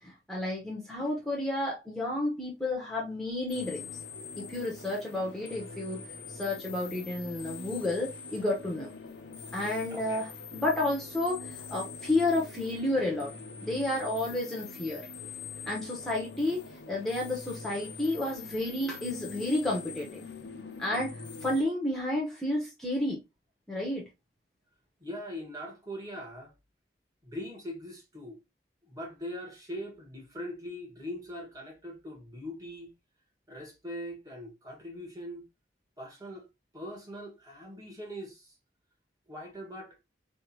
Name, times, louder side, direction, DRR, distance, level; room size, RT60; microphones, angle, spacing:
voice 1, 0.0-3.9 4.4-6.0 6.3-8.9 9.5-15.1 15.6-16.6 16.9-20.2 20.8-23.2 23.7-24.1, left 1 dB, ahead, 1.1 m, -31 dB
sound 1, 3.5-21.6, left 4 dB, 85° left, 0.8 m, -44 dB
voice 2, 9.9-10.3 25.0-26.5 27.2-28.4 28.9-32.9 33.5-35.5 36.0-36.5 36.7-38.5 39.3-40.0, equal, 20° right, 1.6 m, -41 dB
4.9 x 3.5 x 2.8 m
head